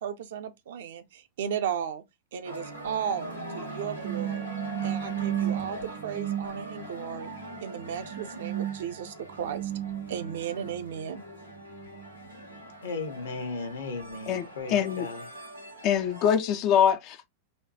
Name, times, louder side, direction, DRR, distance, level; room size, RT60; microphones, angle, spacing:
voice 1, 0.0-2.0 2.3-4.5 4.8-7.3 7.6-9.7 10.1-11.2, right 8 dB, 60° right, 0.5 m, -35 dB
sound 1, 2.4-16.4, right 7 dB, 90° left, 1.1 m, -36 dB
voice 2, 12.8-15.2, left 3 dB, 65° left, 0.9 m, -36 dB
voice 3, 14.3-15.1 15.8-17.3, left 8 dB, 40° left, 0.3 m, -24 dB
4.1 x 2.2 x 2.8 m
figure-of-eight pair, 90°, 0 cm